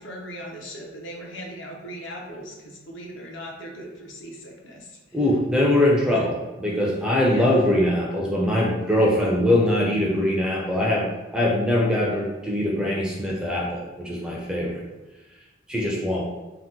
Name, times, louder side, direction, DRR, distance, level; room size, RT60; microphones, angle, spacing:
voice 1, 0.0-5.0 6.1-6.3 7.3-7.6, equal, 65° left, 0 dB, 0.6 m, -38 dB
voice 2, 5.1-6.3 6.6-14.8 15.7-16.2, left 1 dB, 5° right, -4 dB, 0.4 m, -22 dB
2.8 x 2.1 x 3.6 m, 1.1 s
head